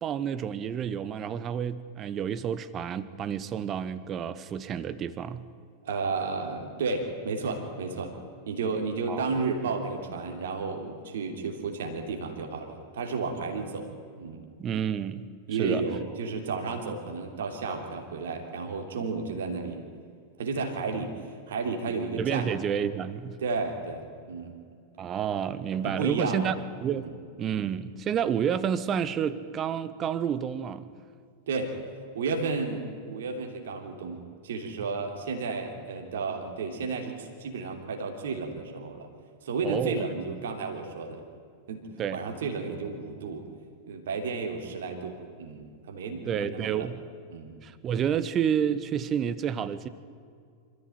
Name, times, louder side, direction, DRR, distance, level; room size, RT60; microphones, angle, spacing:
voice 1, 0.0-5.4 9.1-9.4 14.6-15.3 15.6-15.9 22.2-23.4 25.0-26.5 26.8-30.9 39.6-40.0 42.0-42.2 46.3-47.0 47.6-49.9, right 8 dB, 30° right, 15 dB, 1.1 m, -30 dB
voice 2, 5.8-8.2 8.5-13.9 14.2-14.4 15.5-19.8 20.4-21.1 21.5-22.5 23.4-24.6 25.8-26.5 27.0-27.1 31.5-31.8 32.1-39.1 39.4-41.2 41.7-43.5 43.9-46.9 47.3-47.6, right 4 dB, 60° right, 3 dB, 3.1 m, -32 dB
26.5 x 14.5 x 9.3 m, 2.2 s
figure-of-eight pair, 90°, 0 cm